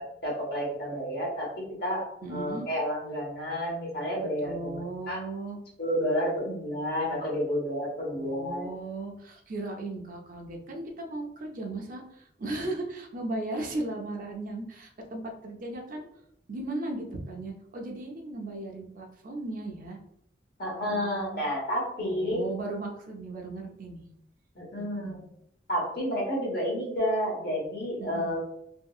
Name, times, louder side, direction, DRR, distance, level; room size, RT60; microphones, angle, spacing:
voice 1, 0.2-5.2 5.8-8.7 20.6-22.4 24.5-25.2 25.7-28.4, equal, 60° left, -2 dB, 1.1 m, -30 dB
voice 2, 2.2-2.7 4.4-5.6 8.0-16.0 16.5-20.0 20.8-21.4 22.0-24.1 24.8-25.2 28.0-28.4, right 2 dB, 50° right, 1 dB, 0.5 m, -37 dB
2.8 x 2.7 x 2.3 m, 0.75 s
head